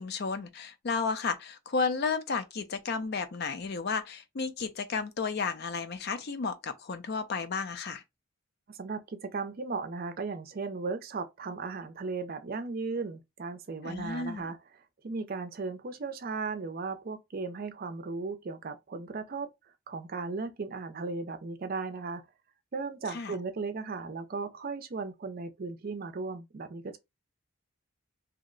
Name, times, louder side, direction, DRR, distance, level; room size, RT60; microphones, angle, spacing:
voice 1, 0.0-8.0 13.8-14.5 23.1-23.4, left 4 dB, 45° left, 0.4 m, -33 dB
voice 2, 8.7-14.6 15.0-19.5 19.9-22.2 22.7-27.0, right 4 dB, 40° right, 0.4 m, -36 dB
2.8 x 2.1 x 3.7 m
head